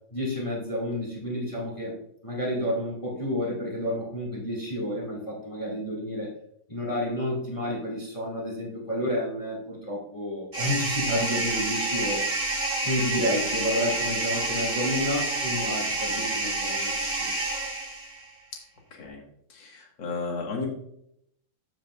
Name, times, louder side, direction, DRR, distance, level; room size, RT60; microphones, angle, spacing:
voice 1, 0.1-1.9 2.2-6.3 6.7-12.2 12.8-17.3, left 1 dB, 15° left, -3 dB, 1.1 m, -30 dB
sound 1, 10.5-18.3, right 2 dB, 20° right, 1.7 m, -28 dB
voice 2, 18.9-19.2 19.5-20.7, left 3 dB, 50° left, 0 dB, 1.4 m, -34 dB
14.5 x 5.6 x 2.5 m, 0.73 s
omnidirectional pair, 4.4 m